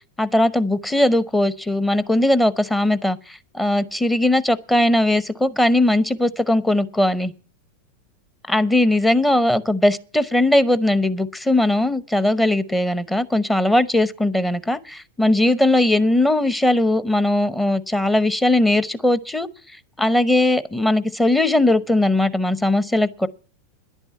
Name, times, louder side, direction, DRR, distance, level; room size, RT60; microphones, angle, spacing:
voice 1, 0.2-7.3 8.5-19.5 20.0-23.3, left 1 dB, 10° left, 0.8 m, -19 dB
11.0 x 9.0 x 8.2 m
figure-of-eight pair, 90°, 0 cm